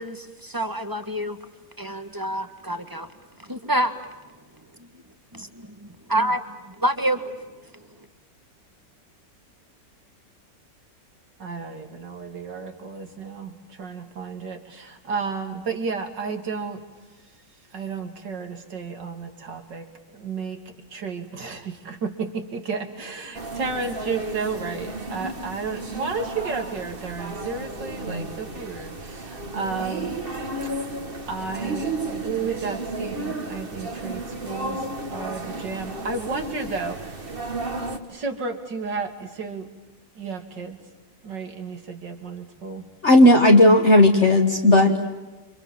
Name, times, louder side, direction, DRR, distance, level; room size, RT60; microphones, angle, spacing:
voice 1, 0.0-1.4 1.8-3.1 3.5-3.9 5.3-7.3, right 1 dB, 10° right, 8 dB, 1.7 m, -27 dB
voice 2, 11.4-16.8 17.7-20.6 20.9-30.2 31.2-37.3 38.1-39.7 40.2-40.8 41.2-42.9, right 4 dB, 75° right, 5 dB, 3.6 m, -32 dB
sound 1, 23.3-38.0, right 2 dB, 30° right, 2.2 m, -33 dB
voice 3, 43.0-45.0, left 1 dB, 40° left, 2 dB, 1.8 m, -14 dB
30.0 x 26.5 x 7.4 m, 1.2 s
omnidirectional pair, 1.9 m